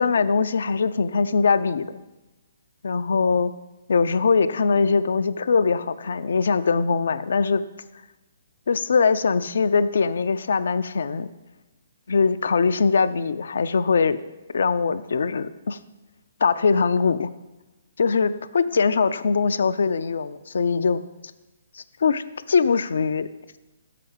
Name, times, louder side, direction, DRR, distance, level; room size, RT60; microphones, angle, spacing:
voice 1, 0.0-1.9 2.8-3.5 3.9-7.6 8.7-11.3 12.1-14.2 14.5-15.8 16.4-17.3 18.0-21.0 21.7-23.3, left 5 dB, 60° left, 13 dB, 0.4 m, -22 dB
6.8 x 5.8 x 5.3 m, 1.1 s
figure-of-eight pair, 130°, 0 cm